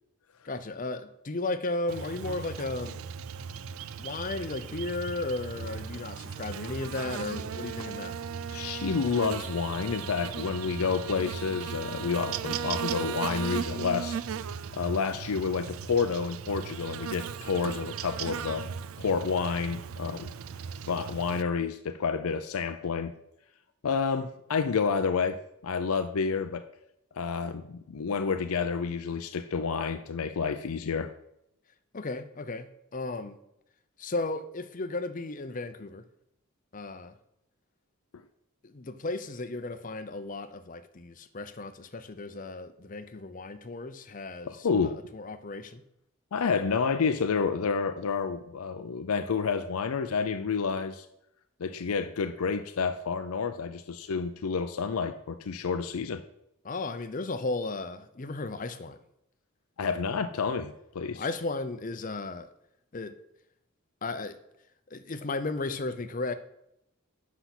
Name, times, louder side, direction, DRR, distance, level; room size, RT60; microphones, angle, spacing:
voice 1, 0.4-3.0 4.0-8.1 31.9-33.4 34.0-36.0 36.7-37.1 38.6-45.8 56.6-59.0 61.2-62.5 62.9-63.2 64.0-64.4 64.9-66.3, left 2 dB, 40° left, 10 dB, 0.6 m, -35 dB
Buzz, 1.9-21.4, right 7 dB, 75° right, 0.4 m, -37 dB
voice 2, 8.5-14.2 14.7-18.7 19.0-20.3 20.9-23.1 23.8-26.7 27.2-31.1 44.5-45.0 46.3-51.1 51.6-56.2 59.8-61.3, left 5 dB, 85° left, 8 dB, 0.5 m, -29 dB
8.0 x 5.8 x 5.9 m, 0.81 s
head